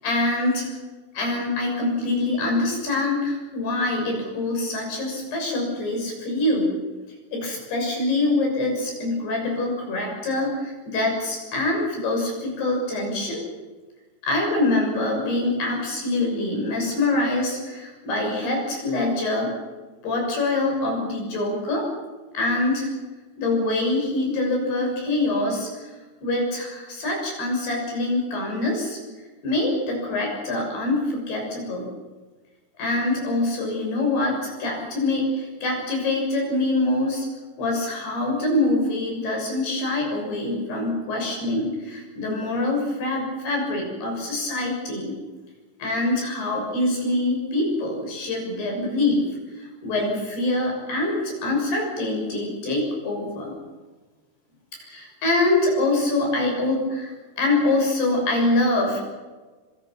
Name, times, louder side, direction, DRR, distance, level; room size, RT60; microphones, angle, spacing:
voice 1, 0.0-0.8 1.1-6.7 7.3-13.4 14.2-19.5 20.0-21.9 22.3-22.9 23.4-25.9 26.2-29.0 29.4-31.9 32.8-37.3 37.6-45.1 45.8-49.2 49.6-53.5 54.8-59.0, left 2 dB, 75° left, 1 dB, 8.5 m, -24 dB
26.5 x 25.5 x 6.2 m, 1.3 s
omnidirectional pair, 4.7 m